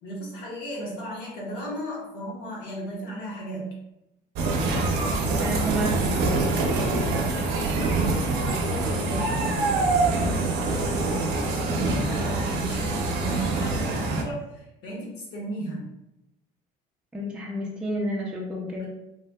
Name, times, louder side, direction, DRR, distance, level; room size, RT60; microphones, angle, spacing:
voice 1, 0.0-3.7 6.8-9.8 10.1-15.9 18.8-18.9, right 1 dB, 85° left, -3 dB, 1.1 m, -36 dB
sound 1, 4.3-14.2, right 3 dB, 85° right, 0.6 m, -25 dB
voice 2, 5.4-6.4 17.1-18.9, right 1 dB, 5° right, -4 dB, 0.4 m, -30 dB
3.1 x 2.7 x 2.2 m, 0.86 s
cardioid pair, 170°, 17 cm